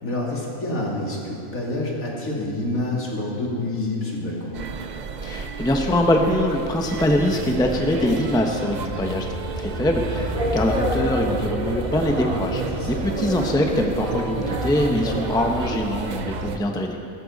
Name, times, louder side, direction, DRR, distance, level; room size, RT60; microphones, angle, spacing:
voice 1, 0.0-4.5 8.8-9.0 12.7-13.0, left 2 dB, 75° left, -3 dB, 2.9 m, -28 dB
sound 1, 4.5-16.6, right 6 dB, 55° right, 0.5 m, -32 dB
voice 2, 5.2-9.3 9.6-17.0, left 1 dB, 5° left, 2 dB, 0.8 m, -23 dB
sound 2, 7.8-16.6, equal, 25° left, 2.1 m, -30 dB
17.0 x 14.0 x 4.1 m, 2.6 s
omnidirectional pair, 1.4 m